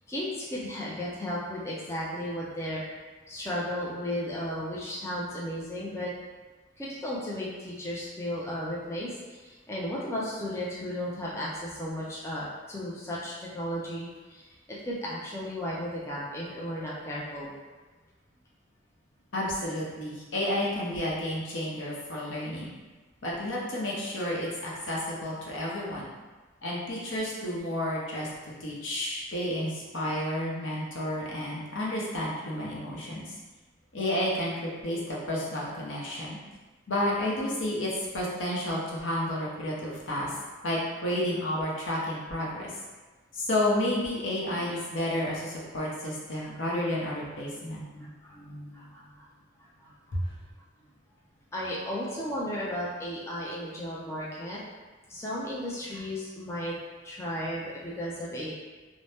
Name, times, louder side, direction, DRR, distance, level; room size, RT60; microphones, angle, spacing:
voice 1, 0.1-3.0 3.3-6.1 6.8-17.5 28.3-28.4 44.5-44.6 46.3-46.7 47.7-49.2 49.6-50.2 51.5-54.6 55.1-56.8 57.0-58.5, equal, 15° left, -6 dB, 0.4 m, -35 dB
voice 2, 19.3-22.7 23.2-26.1 26.6-28.3 28.6-33.3 33.9-36.4 36.9-40.3 40.6-42.7 43.3-47.8 50.1-50.3, left 1 dB, 80° left, -5 dB, 0.7 m, -31 dB
2.7 x 2.0 x 3.3 m, 1.3 s
head